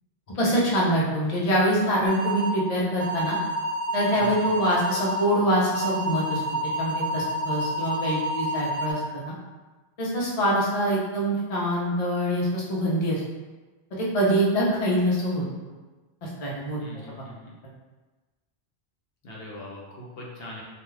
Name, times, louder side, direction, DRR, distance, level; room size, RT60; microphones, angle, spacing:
voice 1, 0.3-3.4 3.9-6.4 6.8-9.2 10.0-13.2 14.0-15.4 16.2-16.8, equal, 45° left, -5 dB, 0.6 m, -24 dB
sound 1, 2.1-2.5 3.0-5.2 5.7-8.9, right 1 dB, 70° right, 0.8 m, -29 dB
voice 2, 4.2-4.5 16.8-17.5 19.2-20.6, left 1 dB, 70° left, -4 dB, 0.8 m, -41 dB
2.3 x 2.3 x 3.1 m, 1.2 s
omnidirectional pair, 1.1 m